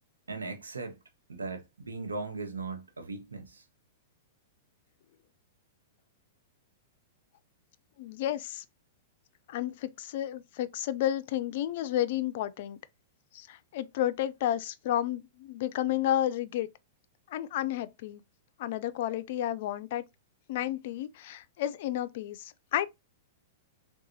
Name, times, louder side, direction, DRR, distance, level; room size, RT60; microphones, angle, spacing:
voice 1, 0.3-1.0 1.3-3.6, right 3 dB, 85° right, 0.8 m, -38 dB
voice 2, 8.0-8.6 9.5-12.8 13.3-16.7 17.3-18.2 18.6-20.0 20.5-22.9, left 12 dB, 55° left, 0.3 m, -31 dB
3.7 x 2.3 x 2.7 m
hypercardioid pair, 110°, 0 cm